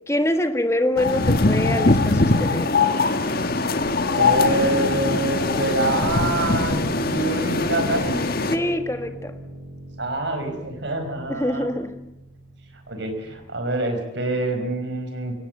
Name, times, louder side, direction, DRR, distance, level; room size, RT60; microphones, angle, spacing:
voice 1, 0.1-2.9 8.5-9.4 11.3-12.0, left 1 dB, 15° left, 1.5 m, -25 dB
sound 1, 1.0-8.6, left 3 dB, 50° left, 1.5 m, -21 dB
sound 2, 3.8-13.4, equal, 35° right, 4.2 m, -39 dB
voice 2, 4.1-8.2 10.0-11.7 12.9-15.3, right 2 dB, 60° right, 4.9 m, -26 dB
28.0 x 17.5 x 7.8 m
head